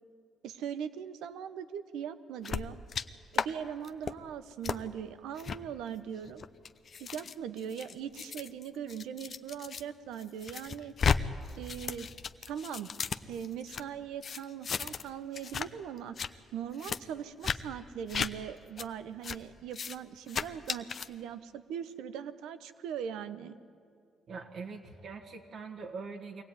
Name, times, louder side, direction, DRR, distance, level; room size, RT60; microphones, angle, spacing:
voice 1, 0.4-2.8 3.3-6.4 7.0-10.9 11.6-12.1 12.5-12.9 13.3-16.2 16.5-23.6, right 8 dB, 90° right, 12 dB, 0.9 m, -40 dB
sound 1, 2.4-3.0 3.3-3.5 3.8-4.1 4.6-4.8 5.4-5.6 6.2-9.8 10.2-11.2 11.5-13.8 14.2-15.1 15.3-15.7 16.0-16.3 16.8-17.0 17.4-17.6 18.1-18.3 18.8-18.9 19.2-19.4 19.7-20.0 20.3-21.1, left 6 dB, 50° left, 0.8 m, -34 dB
voice 2, 24.3-26.4, right 4 dB, 60° right, 3 dB, 1.7 m, -43 dB
23.5 x 17.0 x 9.5 m, 2.3 s
cardioid pair, 90°, 0 cm